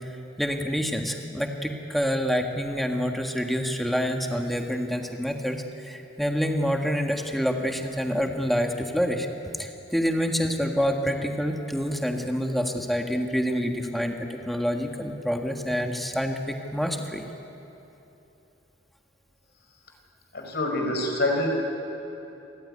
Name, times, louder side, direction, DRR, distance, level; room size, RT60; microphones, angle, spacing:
voice 1, 0.4-9.3 9.6-17.2, equal, ahead, 3 dB, 1.6 m, -27 dB
voice 2, 20.3-21.5, left 1 dB, 55° left, 2 dB, 4.7 m, -26 dB
27.5 x 15.0 x 9.7 m, 2.9 s
head